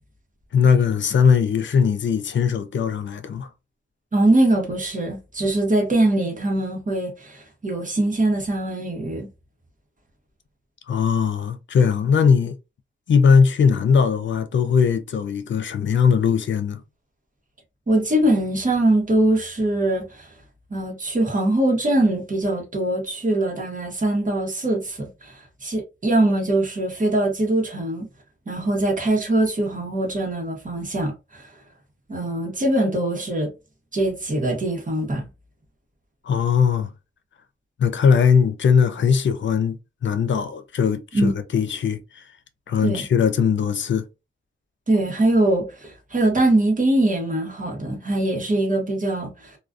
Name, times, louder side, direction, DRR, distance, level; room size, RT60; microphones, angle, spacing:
voice 1, 0.5-3.5 10.9-12.6 13.1-16.8 36.2-36.9 37.8-39.8 40.0-42.3 42.7-44.1, left 6 dB, 70° left, 0.4 m, -19 dB
voice 2, 4.1-9.3 17.9-20.3 20.7-25.3 25.6-28.1 28.5-31.4 32.1-33.5 33.9-35.3 41.1-41.3 42.8-43.0 44.9-49.6, right 1 dB, 40° right, 1.0 m, -22 dB
2.3 x 2.3 x 2.4 m
wide cardioid pair, 95°, 20 cm